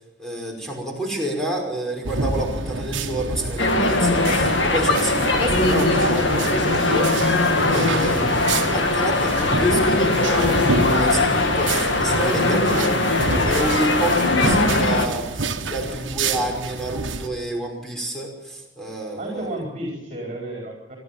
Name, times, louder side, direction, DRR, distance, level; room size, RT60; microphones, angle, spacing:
voice 1, 0.2-19.5, right 1 dB, ahead, 0 dB, 5.6 m, -29 dB
sound 1, 2.0-17.3, right 3 dB, 85° right, 1.5 m, -28 dB
sound 2, 3.6-15.1, left 2 dB, 70° left, 2.2 m, -20 dB
voice 2, 12.0-12.9 19.2-21.0, right 1 dB, 35° right, -1 dB, 4.5 m, -33 dB
26.0 x 12.5 x 8.8 m, 1.0 s
head